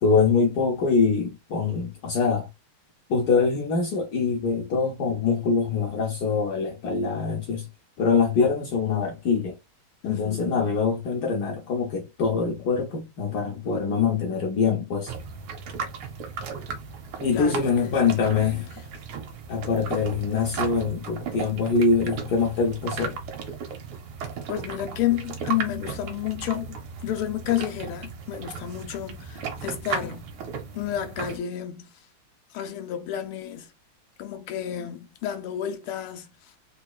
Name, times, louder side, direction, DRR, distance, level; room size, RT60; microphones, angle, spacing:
voice 1, 0.0-2.5 3.1-7.7 8.0-9.5 10.0-15.1 17.2-18.7 19.5-23.2, left 5 dB, 65° left, 1.0 m, -24 dB
voice 2, 10.0-10.7 17.3-18.8 24.5-30.3 30.7-31.9 32.5-33.7 34.2-36.5, left 11 dB, 85° left, 1.6 m, -31 dB
sound 1, 15.1-31.4, right 6 dB, 80° right, 1.7 m, -36 dB
4.0 x 3.0 x 2.3 m
omnidirectional pair, 2.4 m